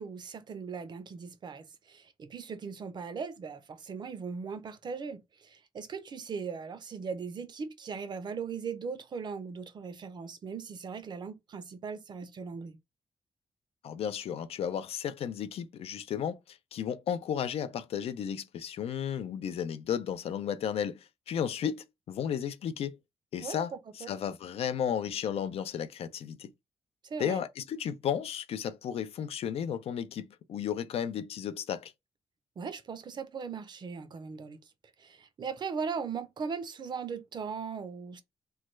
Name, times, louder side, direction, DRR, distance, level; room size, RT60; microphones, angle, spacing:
voice 1, 0.0-12.8 23.4-24.1 27.0-27.4 32.6-34.6 35.0-38.2, right 5 dB, 45° right, 0.5 m, -39 dB
voice 2, 13.8-23.0 23.3-26.5 27.2-31.9, left 8 dB, 70° left, 0.4 m, -34 dB
3.1 x 2.2 x 3.1 m
wide cardioid pair, 140°, 11 cm